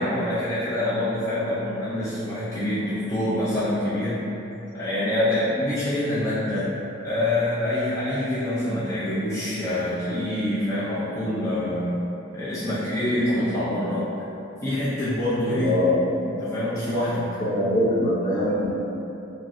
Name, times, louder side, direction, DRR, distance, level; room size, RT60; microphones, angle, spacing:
voice 1, 0.0-4.2 4.7-6.7 7.0-11.9 12.3-14.0 14.6-15.7 16.2-17.4, left 1 dB, 15° left, -12 dB, 0.6 m, -26 dB
voice 2, 15.5-16.0 17.4-18.7, left 1 dB, 40° left, -9 dB, 0.9 m, -23 dB
3.2 x 2.7 x 3.6 m, 2.9 s
head